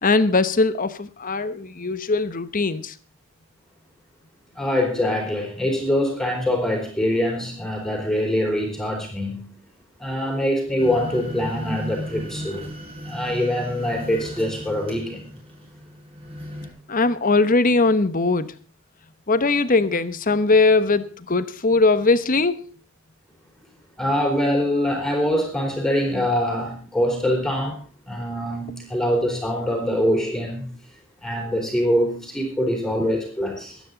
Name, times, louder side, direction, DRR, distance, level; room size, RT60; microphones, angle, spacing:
voice 1, 0.0-2.9 16.9-18.5 19.3-22.6, left 3 dB, 40° left, 13 dB, 1.1 m, -20 dB
voice 2, 4.6-9.5 10.0-12.7 13.0-15.3 24.0-27.8 28.1-30.7 31.2-33.8, equal, ahead, 0 dB, 4.1 m, -24 dB
sound 1, 10.8-16.7, equal, 25° right, 6.3 m, -35 dB
23.5 x 9.5 x 4.0 m, 0.37 s
head